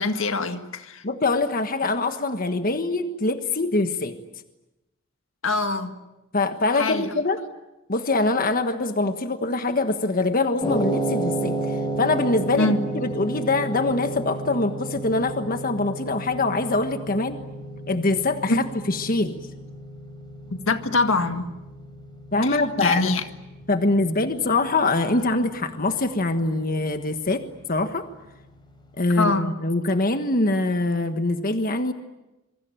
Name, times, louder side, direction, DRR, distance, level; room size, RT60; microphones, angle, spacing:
voice 1, 0.0-1.0 5.4-6.0 6.7-7.1 12.6-12.8 18.5-18.7 20.5-21.5 22.4-23.2 29.2-29.6, left 3 dB, 75° left, 1.8 m, -24 dB
voice 2, 1.0-4.2 6.3-7.4 7.9-17.4 17.9-19.4 22.3-23.2 23.7-27.4 27.7-28.0 29.0-31.9, left 2 dB, 45° left, 1.4 m, -24 dB
sound 1, 10.6-28.9, right 2 dB, 25° left, 4.1 m, -33 dB
26.0 x 24.0 x 8.9 m
head